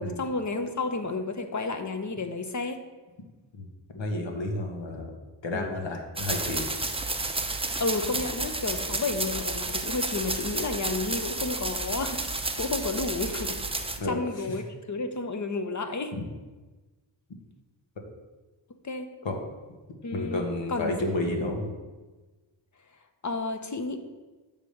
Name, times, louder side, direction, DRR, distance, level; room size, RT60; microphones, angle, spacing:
voice 1, 0.0-2.8 5.5-5.9 7.8-16.1 18.8-19.1 20.0-20.4 20.7-20.9 21.2-21.5 23.2-24.0, left 3 dB, 40° left, 6 dB, 0.8 m, -32 dB
voice 2, 3.9-5.1 5.4-6.6 14.0-14.6 16.1-16.2 19.2-19.4 20.1-21.7, left 2 dB, 70° left, 2 dB, 1.4 m, -31 dB
sound 1, 6.2-14.0, right 2 dB, 15° right, 0.6 m, -31 dB
7.4 x 3.6 x 6.4 m, 1.2 s
cardioid pair, 65°, 46 cm